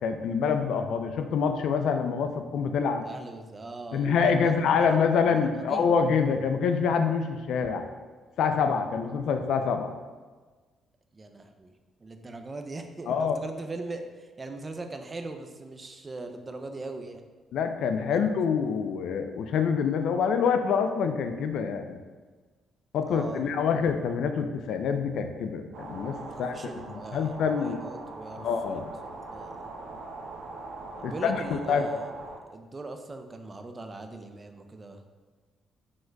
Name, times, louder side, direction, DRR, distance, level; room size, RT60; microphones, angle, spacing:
voice 1, 0.0-3.0 3.9-7.8 8.4-9.9 13.1-13.4 17.5-22.0 22.9-26.5 27.1-27.8 28.4-28.9 31.0-31.4 31.7-31.9, left 6 dB, 75° left, 7 dB, 0.3 m, -26 dB
voice 2, 3.0-5.9 11.1-11.7 12.0-17.2 18.1-18.3 23.1-23.6 26.3-28.8 29.3-29.7 31.0-32.1 32.5-35.0, right 2 dB, 30° right, 6 dB, 0.4 m, -40 dB
sound 1, 25.7-32.4, right 3 dB, 85° right, 0.5 m, -41 dB
5.1 x 3.7 x 2.2 m, 1.4 s
cardioid pair, 90°, 0 cm